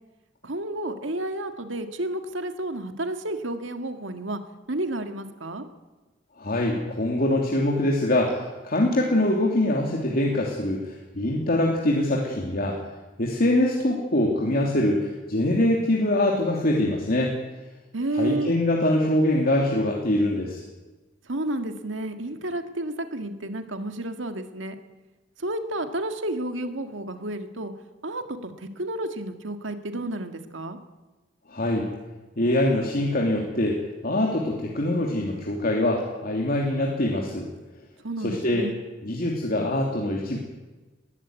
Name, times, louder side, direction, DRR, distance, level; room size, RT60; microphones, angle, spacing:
voice 1, 0.4-4.4 4.7-5.6 17.9-18.5 21.2-24.8 25.4-27.7 28.0-30.8 38.0-38.8, right 1 dB, 85° right, 7 dB, 1.9 m, -31 dB
voice 2, 6.4-12.8 13.2-17.3 18.2-20.6 31.5-31.9 32.4-33.8 34.0-37.5 38.2-38.7 39.0-40.4, left 1 dB, 50° left, -1 dB, 2.9 m, -24 dB
20.0 x 15.5 x 9.4 m, 1.2 s
head